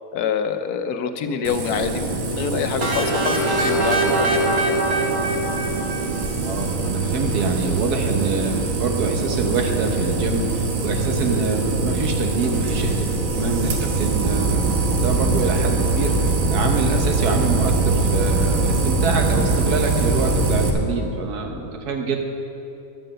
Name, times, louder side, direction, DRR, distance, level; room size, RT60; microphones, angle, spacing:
voice 1, 0.1-4.4, left 7 dB, 85° left, 8 dB, 1.2 m, -26 dB
sound 1, 1.4-20.7, right 3 dB, 60° right, 1.5 m, -23 dB
sound 2, 2.8-6.6, right 2 dB, 45° right, 1.3 m, -23 dB
voice 2, 6.4-22.2, right 4 dB, 85° right, 3 dB, 1.6 m, -26 dB
11.0 x 7.6 x 6.5 m, 2.7 s
omnidirectional pair, 1.6 m